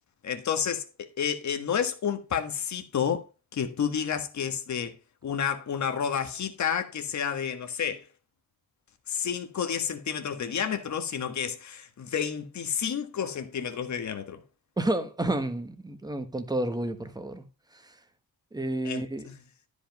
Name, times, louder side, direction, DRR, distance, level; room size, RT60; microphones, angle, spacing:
voice 1, 0.2-3.2 3.5-5.0 5.2-8.1 9.1-14.4 18.8-19.3, left 7 dB, 50° left, 1.5 m, -30 dB
voice 2, 14.8-17.4 17.7-17.9 18.5-19.3, right 1 dB, 10° right, 1.2 m, -30 dB
12.5 x 5.3 x 5.2 m
wide cardioid pair, 165°, 37 cm